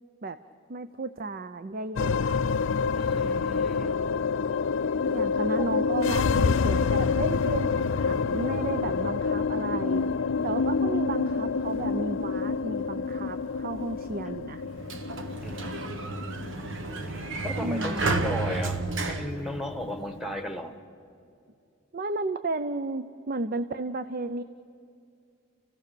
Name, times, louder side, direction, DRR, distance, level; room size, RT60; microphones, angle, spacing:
voice 1, 0.7-2.4 5.1-10.1 10.4-14.6 17.6-18.1 21.9-24.4, right 2 dB, 45° right, 12 dB, 0.5 m, -33 dB
sound 1, 2.0-20.5, left 5 dB, 75° left, 0.5 m, -28 dB
voice 2, 2.9-3.9 5.6-5.7 15.4-16.2 17.1-20.7, left 1 dB, ahead, 5 dB, 1.3 m, -36 dB
Sliding door, 14.6-20.2, right 3 dB, 70° right, 1.2 m, -32 dB
29.5 x 16.0 x 6.9 m, 2.6 s
head